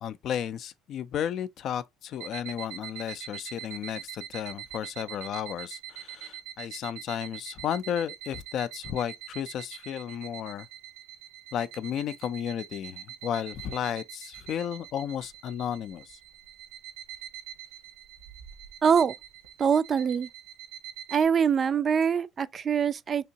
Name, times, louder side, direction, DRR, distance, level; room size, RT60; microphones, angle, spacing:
voice 1, 0.0-10.7 11.5-16.2, left 9 dB, 55° left, 0.3 m, -33 dB
sound 1, 2.1-21.2, right 12 dB, 90° right, 1.0 m, -44 dB
voice 2, 18.8-19.1 19.6-20.3 21.1-23.3, right 7 dB, 40° right, 0.3 m, -24 dB
3.4 x 2.9 x 2.7 m
hypercardioid pair, 75°, 0 cm